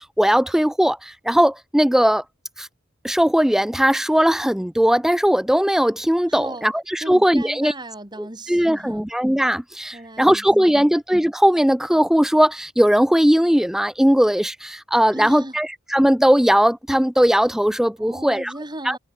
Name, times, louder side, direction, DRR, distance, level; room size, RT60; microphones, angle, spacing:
voice 1, 0.0-2.2 2.6-2.7 3.0-7.7 8.5-15.7 15.9-18.5 18.9-19.0, equal, ahead, 0.4 m, -18 dB
voice 2, 6.3-6.7 7.0-9.0 9.9-11.0 15.1-15.6 18.0-19.0, right 1 dB, 20° right, 3.7 m, -36 dB
head